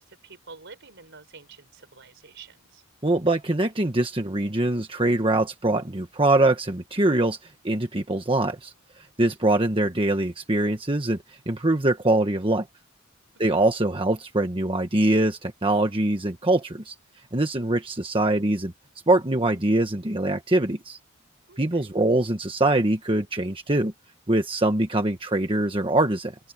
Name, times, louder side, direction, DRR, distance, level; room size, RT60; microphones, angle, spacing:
voice 1, 0.0-2.8 13.5-13.7 21.5-21.9, right 4 dB, 55° right, 4.6 m, -48 dB
voice 2, 3.0-12.7 13.4-16.9 17.3-18.7 19.1-21.0 21.6-23.9 24.3-26.3, right 2 dB, 25° right, 1.3 m, -23 dB
open air
head